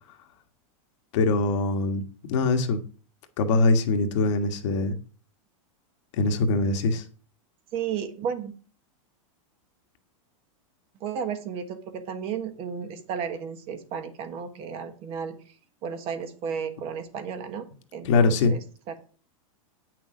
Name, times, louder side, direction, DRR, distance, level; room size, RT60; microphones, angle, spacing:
voice 1, 1.1-2.0 2.3-2.8 3.4-5.0 6.1-7.0 18.0-18.5, left 3 dB, 60° left, 1.5 m, -22 dB
voice 2, 7.7-8.5 11.0-15.4 15.8-17.7 17.9-18.6, right 7 dB, 35° right, 1.2 m, -33 dB
8.9 x 6.2 x 5.1 m
supercardioid pair, 160°, 18 cm